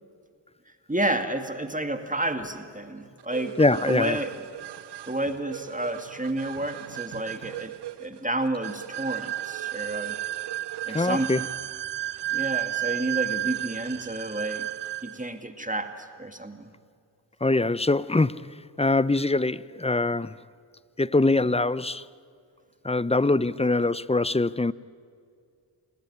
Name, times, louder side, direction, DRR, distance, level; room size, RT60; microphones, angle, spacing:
voice 1, 0.9-3.5 3.8-4.3 5.1-7.7 8.0-10.2 10.9-11.5 12.3-14.7 15.0-16.7, right 1 dB, 20° right, 2.2 m, -30 dB
sound 1, 3.3-15.3, right 14 dB, 65° right, 0.6 m, -34 dB
voice 2, 3.6-4.2 10.9-11.4 17.4-20.4 21.0-22.0 22.8-24.7, left 2 dB, 15° left, 0.7 m, -23 dB
28.0 x 20.0 x 9.9 m
cardioid pair, 50°, 44 cm